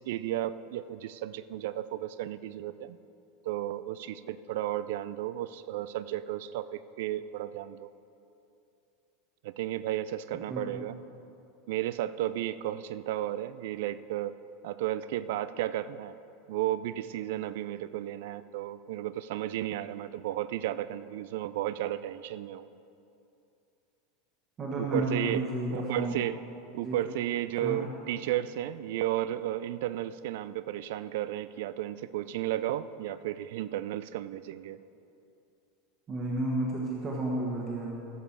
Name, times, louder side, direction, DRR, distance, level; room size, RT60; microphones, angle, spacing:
voice 1, 0.0-3.0 3.4-7.9 9.4-10.9 11.7-14.3 14.6-16.2 16.5-22.7 24.8-25.4 25.7-26.4 26.7-34.8, right 13 dB, 60° right, 15 dB, 0.4 m, -33 dB
voice 2, 10.5-10.8 24.6-26.2 26.8-26.9 27.6-27.8 36.1-37.9, right 1 dB, 30° right, -3 dB, 1.7 m, -32 dB
15.0 x 7.0 x 4.6 m, 2.7 s
figure-of-eight pair, 80°, 0 cm